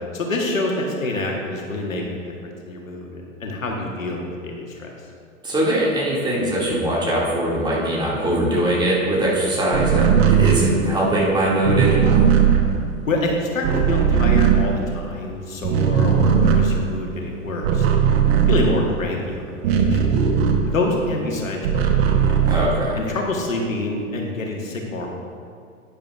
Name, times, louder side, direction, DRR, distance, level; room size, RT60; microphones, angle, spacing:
voice 1, 0.1-4.9 13.1-18.0 18.5-20.1 20.6-22.4 22.9-25.1, left 2 dB, 80° left, 0 dB, 1.7 m, -27 dB
voice 2, 5.4-12.3 22.5-23.0, right 1 dB, 10° right, -6 dB, 2.5 m, -21 dB
sound 1, 9.7-15.3 15.6-21.0 21.4-23.2, right 7 dB, 50° right, 1.2 m, -18 dB
12.0 x 9.8 x 2.6 m, 2.2 s
figure-of-eight pair, 100°, 39 cm